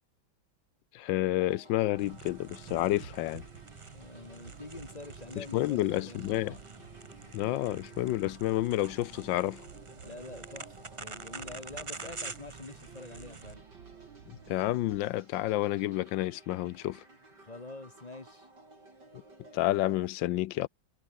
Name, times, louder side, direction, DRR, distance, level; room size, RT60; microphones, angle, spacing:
voice 1, 0.9-3.4 5.4-6.6 7.3-9.6 14.5-17.0 19.5-20.7, left 15 dB, 80° left, 1.3 m, -30 dB
sound 1, 1.4-20.1, right 2 dB, 60° right, 8.1 m, -56 dB
sound 2, 1.9-15.0, right 7 dB, 75° right, 2.6 m, -52 dB
sound 3, 2.0-13.6, right 4 dB, 25° right, 0.7 m, -47 dB
voice 2, 3.9-6.6 10.0-10.7 11.0-13.6 17.4-18.5, left 2 dB, 25° left, 1.1 m, -46 dB
omnidirectional pair, 2.1 m